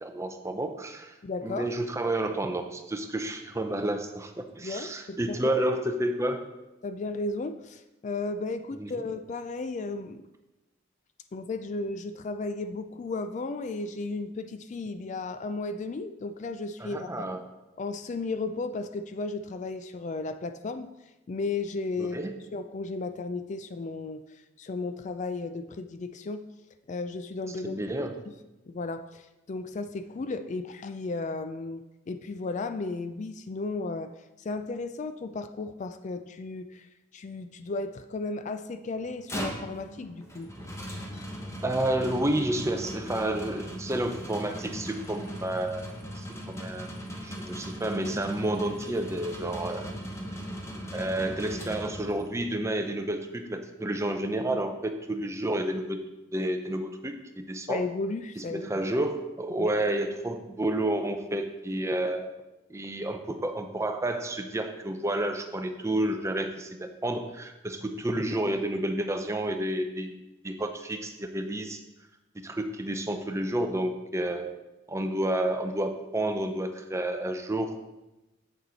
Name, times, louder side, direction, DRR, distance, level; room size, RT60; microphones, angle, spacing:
voice 1, 0.0-1.1 1.4-6.4 8.8-9.0 16.8-17.4 22.0-22.4 27.6-28.2 41.6-46.9 47.2-49.9 50.9-56.0 56.3-57.8 58.4-62.3 62.7-71.8 72.3-74.5 74.9-77.7, right 1 dB, 15° right, 6 dB, 0.6 m, -30 dB
voice 2, 1.2-1.7 4.6-5.6 6.8-10.2 11.3-17.2 17.8-20.9 21.3-22.2 22.5-26.4 26.9-28.3 28.7-34.1 34.4-36.9 37.1-40.5 54.5-54.6 57.7-58.7 59.6-59.7, left 3 dB, 40° left, 9 dB, 0.3 m, -34 dB
sound 1, 39.0-52.4, equal, 15° left, 1.0 m, -39 dB
7.8 x 6.9 x 4.0 m, 1.0 s
head